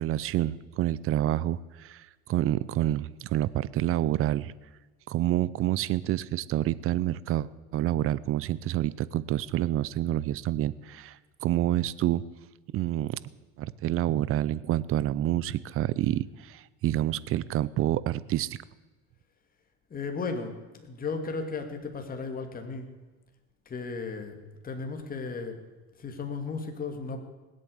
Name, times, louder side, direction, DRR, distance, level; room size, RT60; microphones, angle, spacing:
voice 1, 0.0-4.5 5.1-12.2 12.7-13.2 13.6-18.6, right 13 dB, 40° right, 19 dB, 0.7 m, -28 dB
voice 2, 19.9-22.9 23.7-24.4 24.6-25.6 26.0-27.2, left 4 dB, 25° left, 5 dB, 2.5 m, -35 dB
19.5 x 8.6 x 8.0 m, 1.2 s
supercardioid pair, 105°, 32 cm